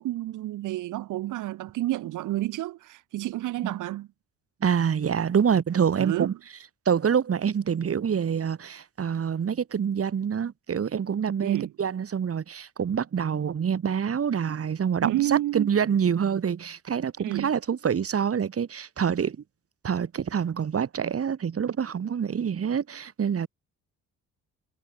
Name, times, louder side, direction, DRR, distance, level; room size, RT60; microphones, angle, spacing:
voice 1, 0.0-4.1 6.0-6.3 11.4-11.7 15.0-15.7 17.2-17.5, right 15 dB, 90° right, 4.4 m, -30 dB
voice 2, 4.6-6.3 6.8-19.4 19.8-23.5, right 7 dB, 50° right, 6.4 m, -26 dB
cardioid pair, 90°, 30 cm